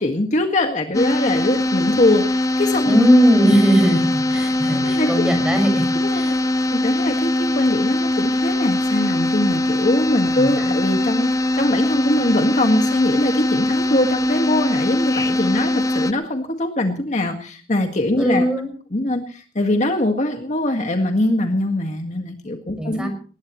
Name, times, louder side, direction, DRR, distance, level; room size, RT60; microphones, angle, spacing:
voice 1, 0.0-3.0 4.8-5.2 6.0-6.3 6.7-11.3 11.5-18.5 18.9-23.1, left 1 dB, 40° left, 4 dB, 1.9 m, -22 dB
sound 1, 0.9-16.1, left 1 dB, 20° left, 0.7 m, -21 dB
voice 2, 2.9-6.3 10.4-10.7 18.2-18.7 22.8-23.2, equal, 5° right, 5 dB, 5.7 m, -18 dB
21.0 x 20.0 x 3.2 m, 0.41 s
head